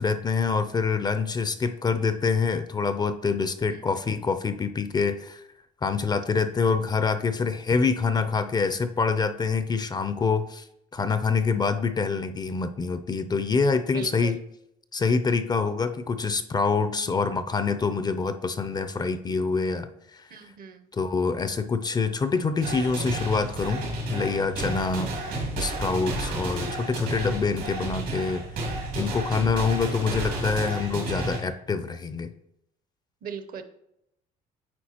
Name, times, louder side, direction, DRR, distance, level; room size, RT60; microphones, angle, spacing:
voice 1, 0.0-5.4 5.8-10.7 10.9-14.4 14.9-20.2 20.9-25.1 25.6-28.4 28.9-32.3, left 4 dB, 25° left, 11 dB, 0.4 m, -26 dB
voice 2, 3.7-4.0 13.9-14.3 20.3-20.9 25.0-25.4 33.2-33.6, right 6 dB, 55° right, 9 dB, 0.7 m, -39 dB
sound 1, 22.6-31.4, right 2 dB, 90° right, 2.4 m, -31 dB
8.7 x 4.4 x 2.9 m, 0.80 s
cardioid pair, 110°, 17 cm